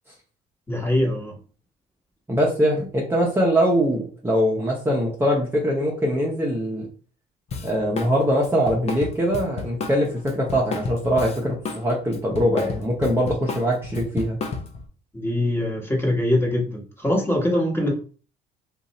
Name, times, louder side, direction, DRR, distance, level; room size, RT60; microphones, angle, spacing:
voice 1, 0.7-1.3 15.1-17.9, left 1 dB, 15° left, 1.3 m, -23 dB
voice 2, 2.3-6.9 7.6-14.4, equal, 15° right, 0.8 m, -22 dB
Drum kit, 7.5-8.1 8.4-11.8 12.1-14.9, left 4 dB, 40° left, 0.7 m, -31 dB
2.6 x 2.4 x 4.1 m
cardioid pair, 110°, 17 cm